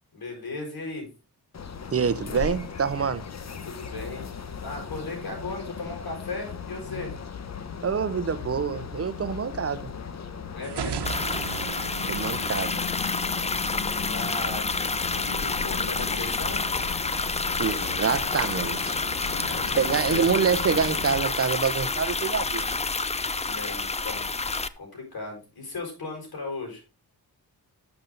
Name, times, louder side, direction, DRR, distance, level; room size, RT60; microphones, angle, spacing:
voice 1, 0.1-1.1 3.6-4.3 4.6-7.1 10.6-11.0 14.1-14.7 15.1-17.0 19.3-19.8 20.1-20.3 23.4-24.3 24.8-26.8, left 3 dB, 65° left, 5.6 m, -36 dB
sound 1, 1.5-21.2, left 6 dB, 40° left, 1.0 m, -37 dB
voice 2, 1.9-3.2 7.8-9.9 12.1-12.8 17.6-19.0 19.4-19.5 19.8-22.8, right 6 dB, 35° right, 0.8 m, -26 dB
sound 2, 10.6-13.5, right 7 dB, 80° right, 1.2 m, -35 dB
sound 3, 11.0-24.7, left 3 dB, 15° left, 0.5 m, -29 dB
11.5 x 7.0 x 3.9 m
wide cardioid pair, 145°, 39 cm